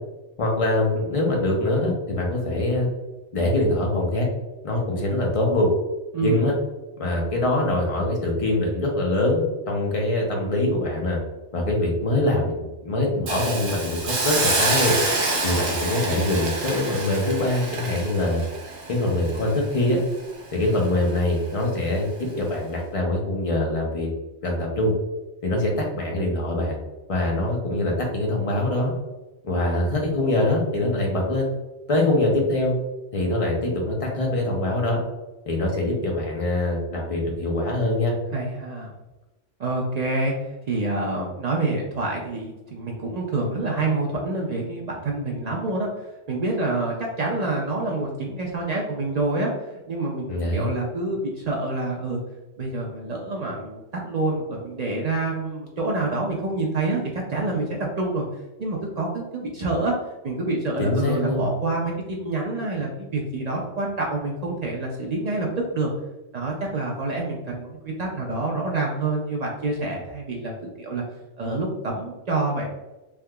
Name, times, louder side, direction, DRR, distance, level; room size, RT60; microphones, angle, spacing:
voice 1, 0.4-2.9 3.3-4.3 4.6-5.7 6.2-6.5 7.0-11.2 11.5-14.9 15.4-18.4 18.9-20.0 20.5-24.1 24.4-24.9 25.4-26.8 27.1-28.9 29.4-31.5 31.9-32.7 33.1-35.0 35.5-38.1 50.3-50.7 60.8-61.5, left 1 dB, 40° left, -1 dB, 0.5 m, -23 dB
voice 2, 6.1-6.4 38.3-38.9 39.6-40.3 40.7-45.9 46.3-50.3 50.5-52.2 52.6-57.0 57.3-58.2 58.6-59.9 60.2-65.9 66.3-71.0 71.4-72.7, right 2 dB, 70° right, -2 dB, 0.4 m, -27 dB
Hiss, 13.3-20.3 20.7-20.8, right 3 dB, 85° right, 1.1 m, -27 dB
3.4 x 2.8 x 2.2 m, 1.1 s
omnidirectional pair, 1.3 m